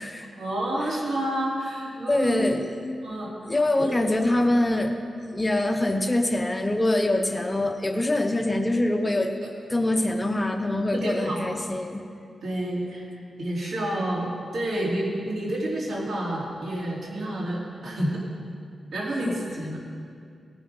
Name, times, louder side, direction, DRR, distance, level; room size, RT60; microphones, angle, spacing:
voice 1, 0.3-2.5 3.0-3.3 3.8-4.2 10.9-11.4 12.4-13.1 13.4-18.2 18.9-19.8, right 1 dB, 70° right, -5 dB, 3.2 m, -29 dB
voice 2, 2.1-2.7 3.5-4.9 5.3-9.3 9.7-12.0 19.3-19.4, left 1 dB, 20° left, 5 dB, 0.8 m, -24 dB
18.0 x 6.1 x 5.5 m, 2.3 s
wide cardioid pair, 95°, 0 cm